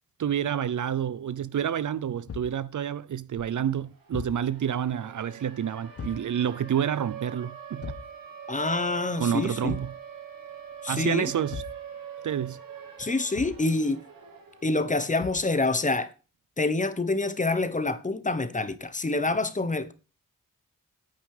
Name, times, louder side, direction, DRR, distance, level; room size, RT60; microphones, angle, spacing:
voice 1, 0.2-7.9 9.2-9.9 10.9-11.6 12.2-12.6, right 9 dB, 60° right, 0.6 m, -29 dB
Thump thud, 2.3-2.6 4.1-4.5 6.0-6.3 7.8-8.2 9.6-10.0 11.5-11.8 13.3-13.7 15.2-15.5, left 6 dB, 45° left, 0.8 m, -39 dB
Siren, 3.8-15.8, right 8 dB, 80° right, 3.5 m, -44 dB
voice 2, 8.5-9.8 10.8-11.3 13.0-14.0 14.6-16.1 16.6-19.9, left 2 dB, 20° left, 1.0 m, -27 dB
9.2 x 8.8 x 4.9 m
wide cardioid pair, 160°, 34 cm